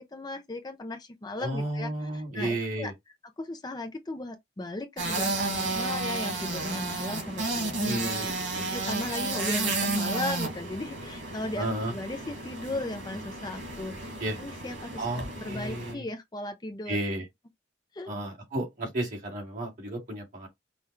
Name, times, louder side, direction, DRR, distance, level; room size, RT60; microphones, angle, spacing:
voice 1, 0.0-2.9 3.4-8.1 8.5-17.0 17.9-18.1, left 2 dB, 20° left, 0.5 m, -37 dB
voice 2, 1.4-2.9 7.8-8.7 11.6-11.9 14.2-14.4 15.0-16.0 16.9-17.2 18.1-20.5, right 1 dB, 45° right, 2.3 m, -33 dB
sound 1, 5.0-15.9, right 3 dB, 80° right, 2.0 m, -32 dB
5.5 x 2.3 x 3.2 m
head